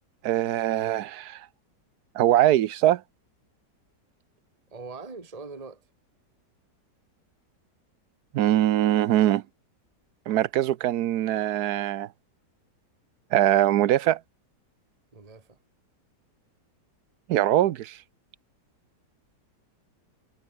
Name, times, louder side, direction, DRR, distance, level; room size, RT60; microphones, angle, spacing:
voice 1, 0.2-1.4 2.1-3.0 8.3-9.4 10.3-12.1 13.3-14.2 17.3-18.0, right 13 dB, 70° right, 1.2 m, -22 dB
voice 2, 4.7-5.8 15.1-15.6, right 4 dB, 20° right, 2.0 m, -42 dB
omnidirectional pair, 1.9 m